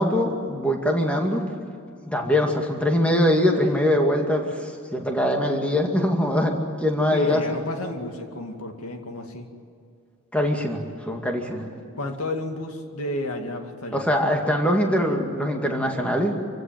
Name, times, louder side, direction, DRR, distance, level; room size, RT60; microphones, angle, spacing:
voice 1, 0.0-1.4 2.0-7.4 10.3-10.8 11.1-11.7 13.9-16.3, left 1 dB, 5° left, 1 dB, 2.2 m, -22 dB
voice 2, 7.1-9.5 11.9-14.0, left 1 dB, 85° left, 4 dB, 2.4 m, -31 dB
27.0 x 16.5 x 9.3 m, 2.5 s
head